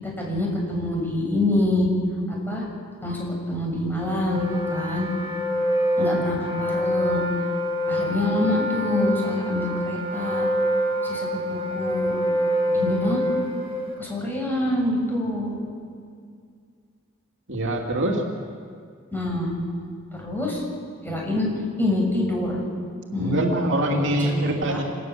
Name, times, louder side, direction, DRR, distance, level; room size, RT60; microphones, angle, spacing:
voice 1, 0.0-1.9 2.3-2.7 3.0-5.1 6.0-7.2 7.9-10.5 11.0-12.2 12.7-13.2 14.0-15.6 19.1-19.5 20.1-20.6 21.0-21.5 21.8-22.6 23.1-23.5 23.9-24.8, left 1 dB, 10° left, -2 dB, 7.4 m, -26 dB
Wind instrument woodwind instrument, 4.0-13.9, equal, 30° right, 5.7 m, -26 dB
voice 2, 17.5-18.2 23.2-24.8, right 1 dB, 65° right, 1 dB, 2.7 m, -24 dB
28.0 x 19.5 x 7.6 m, 2.2 s
head